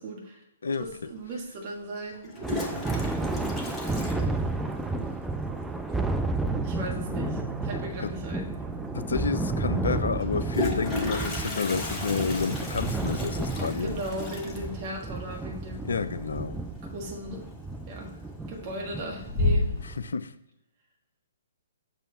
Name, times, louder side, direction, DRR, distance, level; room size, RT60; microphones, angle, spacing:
voice 1, 0.0-0.4 0.8-3.7 6.6-8.5 13.8-15.9 16.9-17.4 17.9-18.1 18.5-19.7, right 1 dB, 35° right, 0 dB, 1.5 m, -37 dB
Toilet flush, 0.8-0.9 2.1-5.0 5.2-5.3 5.6-5.7 6.0-6.3 8.1-8.2 8.5-8.6 10.2-16.8 17.1-17.6 18.0-18.5 18.9-19.9, left 2 dB, 15° left, 1.1 m, -33 dB
Thunder, 2.4-20.1, right 2 dB, 5° right, 0.4 m, -32 dB
sound 1, 6.4-11.5, right 4 dB, 70° right, 0.8 m, -42 dB
voice 2, 8.9-14.0 15.8-16.6 19.8-20.3, left 5 dB, 65° left, 14 dB, 0.4 m, -30 dB
6.9 x 3.1 x 5.5 m, 0.85 s
figure-of-eight pair, 125°, 0 cm